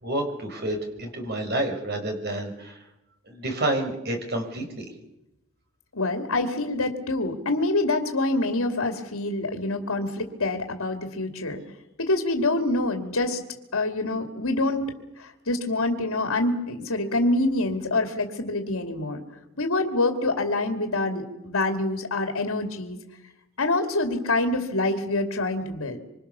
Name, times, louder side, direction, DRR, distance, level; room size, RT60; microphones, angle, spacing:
voice 1, 0.0-2.8 3.3-4.9, right 1 dB, 45° right, 3 dB, 5.4 m, -29 dB
voice 2, 5.9-11.6 12.0-13.4 13.7-14.9 15.2-19.2 19.6-23.0 23.6-26.0, left 2 dB, 85° left, 5 dB, 2.7 m, -26 dB
26.0 x 26.0 x 7.0 m, 0.91 s
head